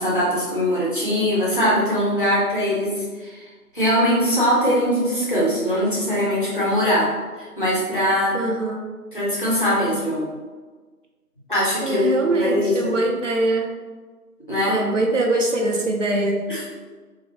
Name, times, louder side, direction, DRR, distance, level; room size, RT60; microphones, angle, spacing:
voice 1, 0.0-3.5 3.7-8.4 9.1-10.3 11.5-12.9 14.5-14.8 16.5-16.7, equal, 35° left, -7 dB, 0.6 m, -21 dB
voice 2, 8.3-8.8 11.8-13.7 14.7-16.4, right 2 dB, 55° right, 0 dB, 0.5 m, -22 dB
3.2 x 2.0 x 2.7 m, 1.4 s
figure-of-eight pair, 170°, 46 cm